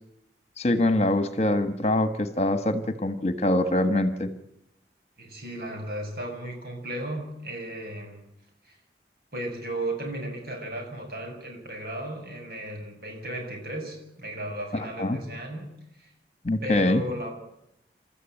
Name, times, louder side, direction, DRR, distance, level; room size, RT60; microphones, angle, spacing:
voice 1, 0.6-4.3 14.7-15.2 16.4-17.0, left 1 dB, 35° left, 10 dB, 1.5 m, -24 dB
voice 2, 5.2-8.2 8.7-8.8 9.3-15.6 16.0-16.1 16.6-17.3, right 1 dB, 60° right, 2 dB, 8.0 m, -35 dB
28.5 x 14.0 x 9.1 m, 0.80 s
head